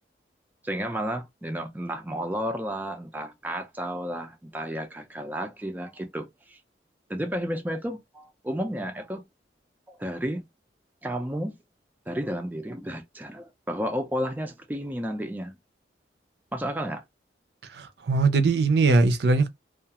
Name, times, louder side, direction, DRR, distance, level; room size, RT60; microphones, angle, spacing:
voice 1, 0.6-6.6 7.1-9.2 9.9-10.4 11.0-11.6 12.1-15.6 16.5-17.0, equal, 10° right, 0.4 m, -32 dB
voice 2, 17.6-19.5, right 3 dB, 70° right, 0.5 m, -21 dB
2.4 x 2.3 x 2.8 m
head